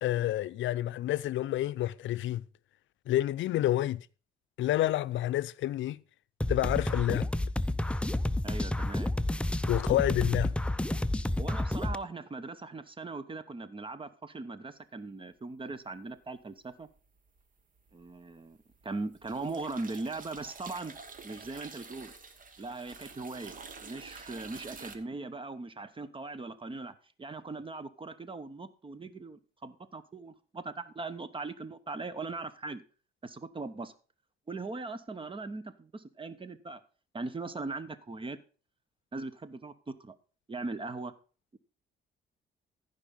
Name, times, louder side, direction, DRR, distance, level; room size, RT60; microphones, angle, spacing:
voice 1, 0.0-2.4 3.1-4.1 4.6-6.0 6.5-7.3 9.7-10.5, left 14 dB, 75° left, 0.5 m, -29 dB
sound 1, 6.4-12.0, left 1 dB, 5° left, 0.5 m, -30 dB
voice 2, 8.4-9.1 11.4-16.9 17.9-18.6 18.8-20.9 21.2-22.1 22.6-32.8 33.2-33.9 34.5-36.8 37.1-38.4 39.1-40.1 40.5-41.1 41.5-41.6, right 3 dB, 25° right, 1.0 m, -40 dB
sound 2, 16.8-17.4 17.8-25.0, right 4 dB, 45° right, 1.5 m, -48 dB
14.5 x 5.4 x 5.3 m
cardioid pair, 90°, 20 cm